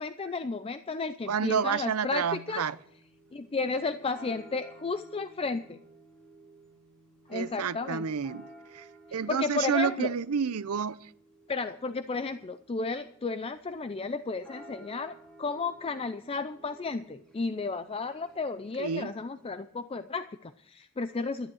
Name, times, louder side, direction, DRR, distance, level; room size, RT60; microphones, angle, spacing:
voice 1, 0.0-2.6 3.3-5.8 7.3-8.0 9.1-10.1 11.5-21.5, left 4 dB, 25° left, 0.4 m, -33 dB
voice 2, 1.3-2.8 7.3-11.1 18.8-19.1, right 6 dB, 75° right, 0.6 m, -30 dB
sound 1, 2.7-19.7, right 2 dB, 5° left, 4.1 m, -55 dB
12.0 x 11.0 x 6.4 m
head